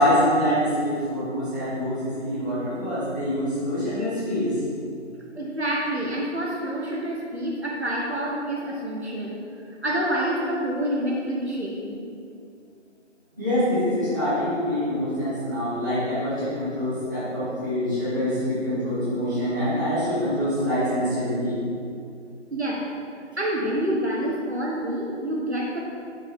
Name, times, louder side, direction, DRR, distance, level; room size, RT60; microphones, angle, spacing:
voice 1, 0.0-4.5 13.4-21.6, equal, 15° right, -15 dB, 1.8 m, -25 dB
voice 2, 5.4-9.4 9.8-12.0 22.5-22.8 23.3-25.8, right 1 dB, 60° right, -3 dB, 1.2 m, -27 dB
6.4 x 5.6 x 4.4 m, 2.4 s
figure-of-eight pair, 165°, 37 cm